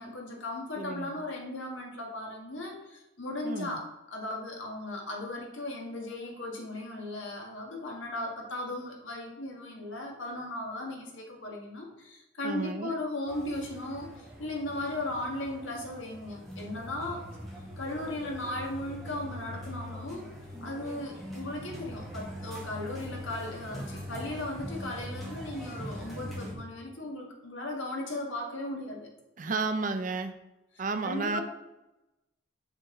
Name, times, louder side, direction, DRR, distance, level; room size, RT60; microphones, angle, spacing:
voice 1, 0.0-17.2 17.8-20.2 20.6-29.1 31.0-31.4, left 1 dB, 70° left, 0 dB, 1.7 m, -37 dB
voice 2, 0.8-1.2 3.4-3.8 12.4-12.9 29.4-30.3 30.8-31.4, right 3 dB, 40° right, 8 dB, 0.5 m, -32 dB
sound 1, 13.3-26.5, equal, ahead, 1.8 m, -42 dB
7.4 x 6.3 x 3.8 m, 0.97 s
head